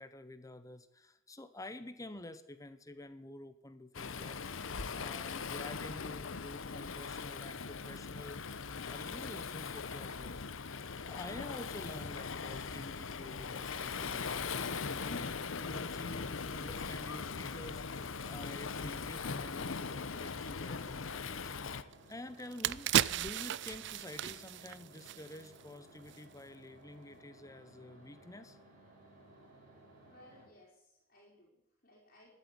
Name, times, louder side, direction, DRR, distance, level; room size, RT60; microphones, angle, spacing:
voice 1, 0.0-4.6 4.9-21.1 21.4-28.6, left 1 dB, 15° left, 11 dB, 0.9 m, -49 dB
Waves surf, 3.9-21.8, left 5 dB, 75° left, 0.8 m, -40 dB
sound 1, 13.0-30.4, right 1 dB, 40° right, 5.9 m, -59 dB
sound 2, 21.9-22.0 22.4-25.7 26.0-26.2, right 11 dB, 60° right, 0.4 m, -34 dB
voice 2, 30.1-32.3, left 1 dB, 45° left, -5 dB, 4.5 m, -61 dB
12.5 x 8.4 x 9.9 m, 0.85 s
head